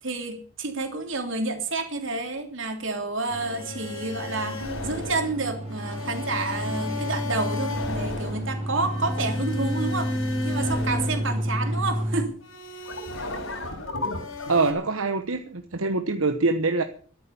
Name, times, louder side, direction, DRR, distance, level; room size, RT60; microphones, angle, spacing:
voice 1, 0.0-10.1 10.4-12.3, right 3 dB, 65° right, 5 dB, 3.2 m, -29 dB
sound 1, 3.3-11.8 12.4-14.7, left 2 dB, 80° left, 5.4 m, -33 dB
sound 2, 3.3-12.3, equal, 30° right, 4.7 m, -31 dB
voice 2, 14.5-16.8, right 3 dB, 85° right, 8 dB, 1.1 m, -24 dB
13.5 x 11.0 x 6.9 m, 0.43 s
head